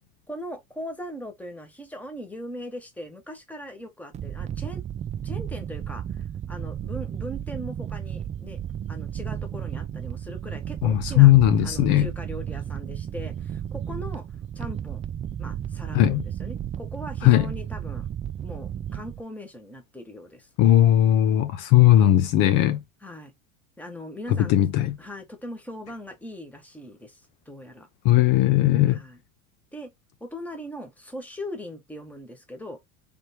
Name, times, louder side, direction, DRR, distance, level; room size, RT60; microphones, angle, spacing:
voice 1, 0.3-4.8 5.2-6.0 6.5-8.6 8.9-11.3 11.6-14.2 14.5-15.0 15.4-18.1 18.4-20.5 23.0-23.3 23.8-24.7 25.0-27.2 27.5-27.9 28.9-29.2 29.7-29.9 30.2-32.8, equal, 5° left, 1.3 m, -39 dB
sound 1, 4.1-19.2, right 9 dB, 20° right, 0.4 m, -33 dB
voice 2, 10.8-12.1 15.9-16.2 17.2-17.5 20.6-22.8 24.5-24.9 28.0-29.0, left 13 dB, 55° left, 0.7 m, -18 dB
3.4 x 3.1 x 4.4 m
supercardioid pair, 110°, 37 cm